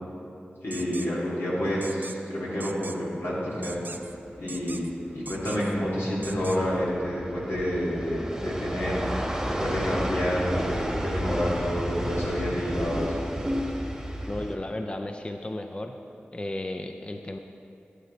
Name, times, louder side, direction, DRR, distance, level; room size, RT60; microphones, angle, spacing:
voice 1, 0.6-3.8 4.4-4.8 5.1-9.0 9.6-13.2, equal, 85° left, -6 dB, 2.2 m, -29 dB
sound 1, 0.7-1.1 1.8-2.2 2.6-3.0 3.6-4.2 4.5-4.9 5.3-5.8 6.2-6.6, right 3 dB, 55° right, 0.4 m, -40 dB
sound 2, 3.7-14.5, equal, 10° right, 1.1 m, -32 dB
voice 2, 14.3-16.0 16.3-17.4, left 1 dB, 25° left, 5 dB, 0.4 m, -34 dB
11.5 x 7.9 x 3.1 m, 2.7 s
cardioid pair, 50°, 4 cm